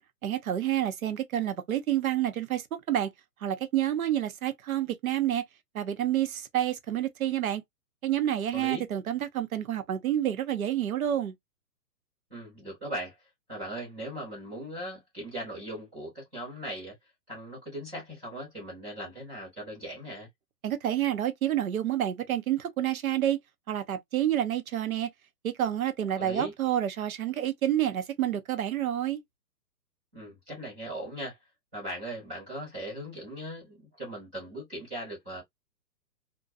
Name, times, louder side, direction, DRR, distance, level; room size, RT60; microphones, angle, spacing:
voice 1, 0.2-3.1 3.4-5.4 5.7-7.6 8.0-11.3 20.6-23.4 23.7-25.1 25.4-29.2, right 11 dB, 60° right, 0.6 m, -28 dB
voice 2, 8.5-8.8 12.3-13.2 13.5-16.9 17.3-20.3 26.1-26.5 30.1-31.4 31.7-35.4, equal, 5° right, 0.6 m, -39 dB
2.5 x 2.2 x 2.5 m
hypercardioid pair, 155°, 49 cm